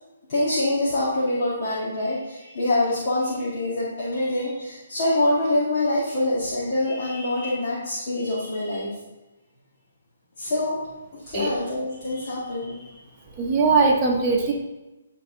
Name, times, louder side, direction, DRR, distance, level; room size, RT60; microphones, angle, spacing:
voice 1, 0.3-8.9 10.4-10.8 11.3-12.8, left 1 dB, 40° left, -9 dB, 2.2 m, -25 dB
voice 2, 13.4-14.5, right 4 dB, 15° right, -4 dB, 1.3 m, -20 dB
10.5 x 4.1 x 4.0 m, 1.0 s
hypercardioid pair, 165°, 0 cm